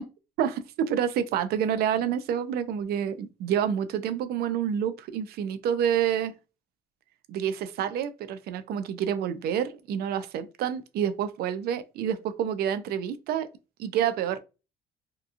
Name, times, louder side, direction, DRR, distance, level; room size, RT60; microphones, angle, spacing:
voice 1, 0.4-6.3 7.3-13.5 13.8-14.4, right 9 dB, 70° right, 0.5 m, -28 dB
2.8 x 2.3 x 2.5 m
cardioid pair, 110°, 17 cm